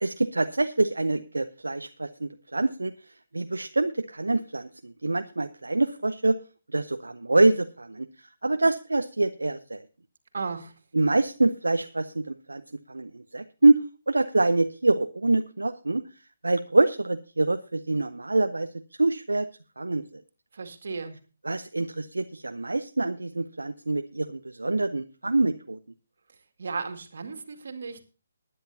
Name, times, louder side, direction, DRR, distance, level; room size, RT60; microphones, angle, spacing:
voice 1, 0.0-2.9 3.3-6.4 6.7-8.1 8.4-9.8 10.9-12.6 12.9-13.8 14.1-16.0 16.4-18.7 19.0-19.5 19.8-20.2 21.4-25.8, right 2 dB, 80° right, 9 dB, 0.6 m, -25 dB
voice 2, 10.3-10.7 20.5-21.2 26.6-28.0, right 4 dB, 60° right, 7 dB, 2.1 m, -35 dB
19.5 x 10.0 x 2.7 m, 0.34 s
figure-of-eight pair, 140°, 0 cm